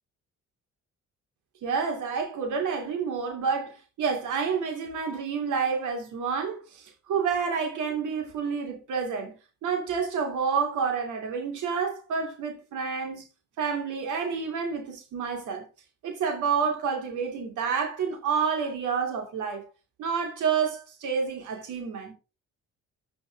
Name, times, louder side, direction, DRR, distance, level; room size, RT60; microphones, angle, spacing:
voice 1, 1.6-9.3 9.6-13.2 13.6-15.7 16.0-19.6 20.0-22.1, right 6 dB, 80° right, 2.9 m, -29 dB
14.0 x 5.2 x 3.5 m
cardioid pair, 90°, 30 cm